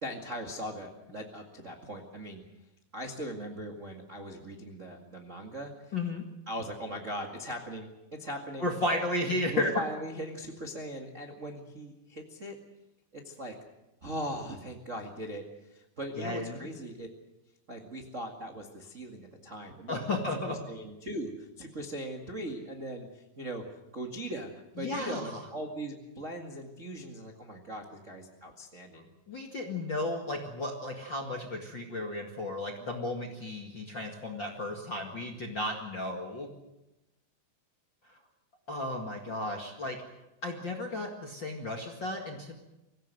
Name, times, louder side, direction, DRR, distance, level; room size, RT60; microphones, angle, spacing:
voice 1, 0.0-2.4 2.9-5.7 6.5-8.7 9.5-12.6 13.1-13.5 14.0-17.1 17.7-23.6 23.9-29.1, right 1 dB, 40° right, 1 dB, 1.0 m, -39 dB
voice 2, 5.9-6.2 8.6-9.7 16.2-16.7 19.9-20.6 24.8-25.4 29.3-36.5 38.1-38.2 38.7-40.0 40.4-42.5, left 2 dB, 40° left, 1 dB, 1.7 m, -34 dB
25.0 x 16.5 x 7.8 m, 0.96 s
omnidirectional pair, 5.0 m